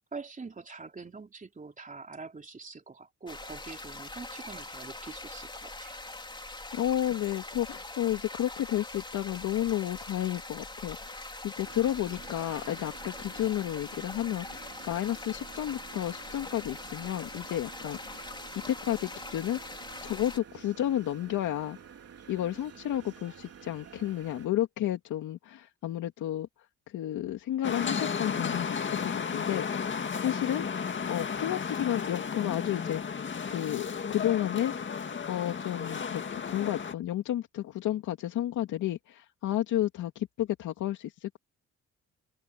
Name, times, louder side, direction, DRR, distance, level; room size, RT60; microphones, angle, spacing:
voice 1, 0.1-6.0, right 4 dB, 25° right, 3.7 m, -44 dB
sound 1, 3.3-20.4, left 2 dB, 15° left, 3.6 m, -43 dB
voice 2, 6.7-19.6 20.0-21.8 22.3-26.5 26.9-30.7 31.1-34.9 35.3-41.4, left 12 dB, 80° left, 2.6 m, -32 dB
sound 2, 11.6-24.5, right 7 dB, 55° right, 3.9 m, -51 dB
sound 3, 27.6-36.9, left 6 dB, 40° left, 2.1 m, -33 dB
cardioid pair, 90°, 30 cm